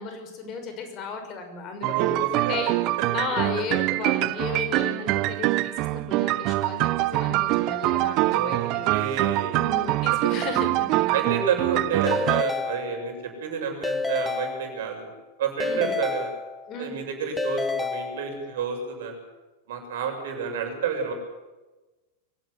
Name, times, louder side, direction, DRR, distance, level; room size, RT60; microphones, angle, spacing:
voice 1, 0.0-2.0 2.5-2.8 3.1-8.9 9.5-11.2 15.6-15.9 16.7-16.9, left 5 dB, 40° left, 6 dB, 6.2 m, -34 dB
sound 1, 1.8-12.4, right 19 dB, 45° right, 0.6 m, -24 dB
voice 2, 1.9-2.6 8.3-9.8 10.1-10.2 11.1-15.1 15.4-16.3 16.8-19.1 19.7-21.1, right 6 dB, 65° right, 4 dB, 7.1 m, -30 dB
Keyboard (musical) / Ringtone, 12.1-13.4 13.8-15.2 15.6-16.9 17.4-18.7, left 4 dB, 10° left, 1.5 m, -30 dB
24.0 x 17.0 x 8.3 m, 1.1 s
figure-of-eight pair, 95°, 0 cm